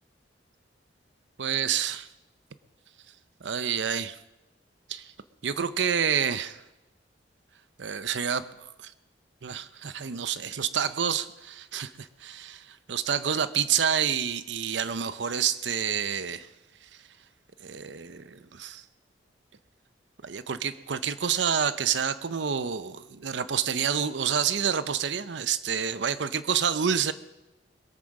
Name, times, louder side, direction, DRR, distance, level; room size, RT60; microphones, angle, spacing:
voice 1, 1.4-2.1 3.4-4.2 4.9-5.1 5.4-6.6 7.8-8.5 8.8-8.9 9.4-16.5 16.8-16.9 17.6-18.8 20.2-27.1, right 7 dB, 80° right, 14 dB, 0.7 m, -28 dB
21.5 x 8.7 x 6.4 m, 1.0 s
head